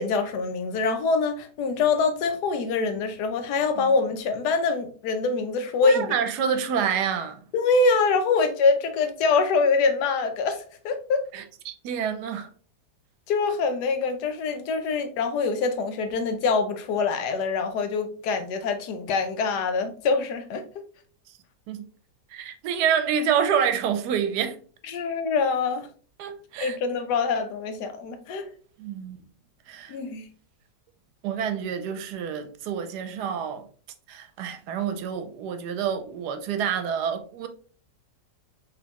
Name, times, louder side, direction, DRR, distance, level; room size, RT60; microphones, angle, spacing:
voice 1, 0.0-6.1 7.5-11.2 13.3-20.8 24.9-25.9 26.6-28.5 29.9-30.3, left 4 dB, 80° left, 1.2 m, -24 dB
voice 2, 5.8-7.4 11.3-12.5 21.7-21.8 22.3-24.6 26.2-26.8 28.8-29.2 29.7-30.0 31.2-33.6 34.1-37.5, right 7 dB, 80° right, 1.2 m, -27 dB
4.1 x 3.3 x 2.9 m
omnidirectional pair, 1.8 m